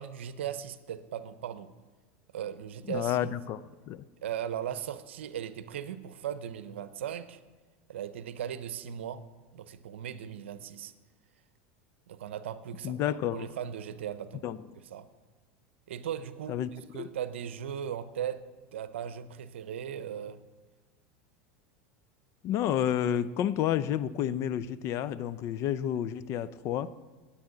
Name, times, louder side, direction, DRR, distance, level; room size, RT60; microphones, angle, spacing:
voice 1, 0.0-1.7 2.3-3.3 4.2-7.4 7.9-9.2 9.5-10.9 12.1-13.0 13.3-14.5 14.9-15.1 15.9-18.4 18.7-20.4, right 9 dB, 80° right, 14 dB, 0.7 m, -38 dB
voice 2, 2.9-3.6 3.9-4.0 12.8-13.5 14.4-14.6 16.5-16.7 17.0-17.1 22.4-26.9, left 10 dB, 50° left, 17 dB, 0.5 m, -30 dB
20.5 x 8.6 x 3.9 m, 1.4 s
hypercardioid pair, 95°, 6 cm